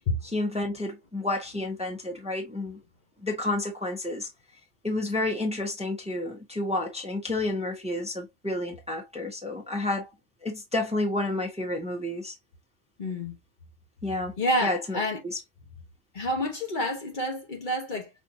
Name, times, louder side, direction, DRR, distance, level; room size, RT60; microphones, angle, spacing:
voice 1, 0.2-2.8 3.2-4.3 4.8-10.1 10.4-12.3 14.0-14.3 14.6-15.4, left 2 dB, 5° right, 0.9 m, -30 dB
voice 2, 13.0-13.4 14.4-15.2 16.1-18.1, left 1 dB, 50° left, 1.0 m, -28 dB
5.3 x 2.6 x 2.6 m
omnidirectional pair, 1.1 m